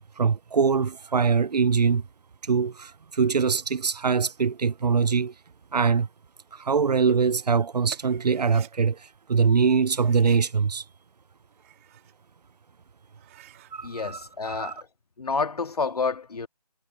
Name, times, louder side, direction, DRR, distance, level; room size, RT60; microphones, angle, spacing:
voice 1, 0.2-2.1 2.4-5.3 5.7-6.1 6.5-10.8 13.7-14.2 14.4-14.7, right 5 dB, 90° right, 0.6 m, -23 dB
sound 1, 7.9-8.7 9.8-10.5 11.4-12.2 12.6-12.7 13.1-13.7, right 15 dB, 20° right, 3.0 m, -50 dB
voice 2, 13.8-14.9 15.2-16.5, left 4 dB, 70° left, 2.3 m, -29 dB
figure-of-eight pair, 165°, 20 cm